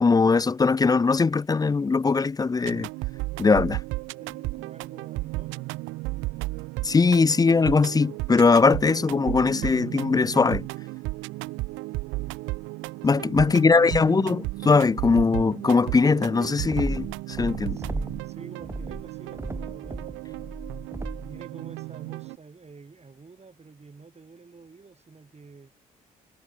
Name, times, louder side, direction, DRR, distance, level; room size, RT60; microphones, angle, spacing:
voice 1, 0.0-2.9 3.4-3.8 6.8-10.7 13.0-17.8, left 4 dB, 20° left, 0.4 m, -21 dB
sound 1, 2.6-22.4, right 22 dB, 75° right, 1.0 m, -34 dB
voice 2, 4.2-5.7 13.0-13.8 17.7-20.4 21.2-25.7, right 4 dB, 35° right, 6.6 m, -48 dB
sound 2, 16.7-18.3 18.6-21.4, right 2 dB, 15° right, 1.2 m, -34 dB
hypercardioid pair, 50°, 20 cm